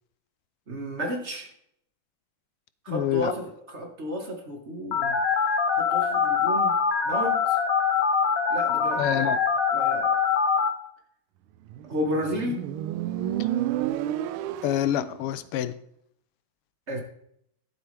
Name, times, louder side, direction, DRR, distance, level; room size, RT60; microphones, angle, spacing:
voice 1, 0.7-1.5 2.8-5.2 5.8-6.7 7.0-7.6 8.5-9.4 9.7-10.2 11.9-12.7 16.9-17.0, equal, 35° right, 2 dB, 1.7 m, -32 dB
voice 2, 2.9-3.3 9.0-9.4 14.6-15.7, left 12 dB, 85° left, 14 dB, 1.6 m, -26 dB
Telephone, 4.9-10.7, left 6 dB, 60° left, 1.7 m, -23 dB
Motorcycle, 11.7-15.2, right 12 dB, 80° right, 1.4 m, -30 dB
12.0 x 7.9 x 3.4 m, 0.72 s
omnidirectional pair, 2.4 m